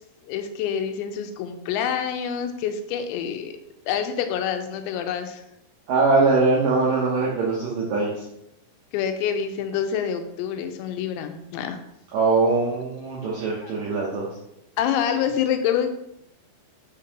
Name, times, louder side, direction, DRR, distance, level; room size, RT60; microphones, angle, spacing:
voice 1, 0.3-3.5 3.9-5.4 8.9-11.8 13.6-13.7 14.8-15.9, left 8 dB, 90° left, 7 dB, 2.9 m, -27 dB
voice 2, 5.9-8.1 12.1-14.3, right 3 dB, 80° right, -5 dB, 2.0 m, -22 dB
6.5 x 5.2 x 2.8 m, 0.78 s
omnidirectional pair, 5.1 m